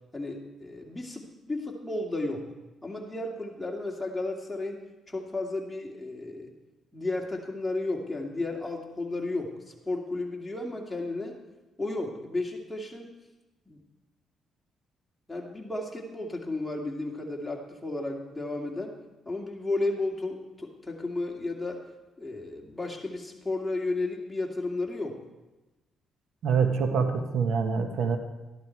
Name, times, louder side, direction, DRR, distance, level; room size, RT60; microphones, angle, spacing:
voice 1, 0.1-2.5 2.8-4.8 5.1-6.5 6.9-9.5 9.9-11.4 11.8-13.1 13.7-13.8 15.3-19.0 19.3-21.9 22.2-25.2, left 2 dB, 10° left, -1 dB, 2.3 m, -33 dB
voice 2, 26.4-28.2, right 5 dB, 75° right, 6 dB, 1.3 m, -25 dB
13.5 x 11.5 x 4.6 m, 1.1 s
cardioid pair, 90°, 0 cm